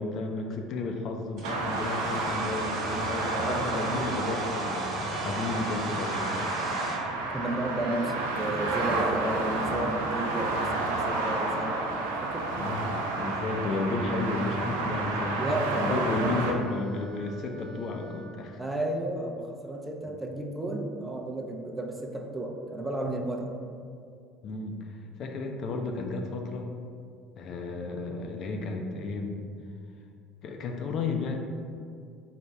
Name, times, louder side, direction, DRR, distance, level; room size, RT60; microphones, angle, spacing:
voice 1, 0.0-6.5 10.5-11.1 12.5-18.6 24.4-26.7 27.4-29.4 30.4-31.4, left 3 dB, 55° left, 3 dB, 0.4 m, -33 dB
Domestic sounds home sounds, 1.4-7.0, right 1 dB, 55° right, 0.7 m, -38 dB
sound 1, 1.4-16.5, right 2 dB, 85° right, 0.4 m, -31 dB
voice 2, 2.9-3.9 7.3-12.5 15.3-16.6 18.6-23.5, right 1 dB, 15° right, 2 dB, 0.5 m, -33 dB
Wind instrument woodwind instrument, 7.7-18.3, right 2 dB, 30° right, 1.1 m, -46 dB
4.1 x 2.1 x 3.4 m, 2.3 s
hypercardioid pair, 75°, 0 cm